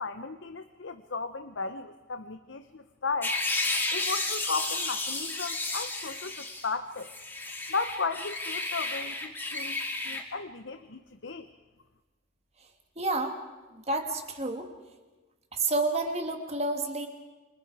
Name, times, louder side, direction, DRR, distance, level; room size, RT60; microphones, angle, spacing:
voice 1, 0.0-3.4 3.9-7.1 7.7-9.8 10.0-11.5, left 4 dB, 60° left, 9 dB, 0.9 m, -35 dB
sound 1, 3.2-6.7 7.0-10.2, left 2 dB, 10° left, 2.1 m, -32 dB
voice 2, 13.0-13.4 13.7-14.7 15.5-17.1, right 2 dB, 30° right, 5 dB, 2.2 m, -29 dB
29.0 x 25.5 x 4.8 m, 1.2 s
head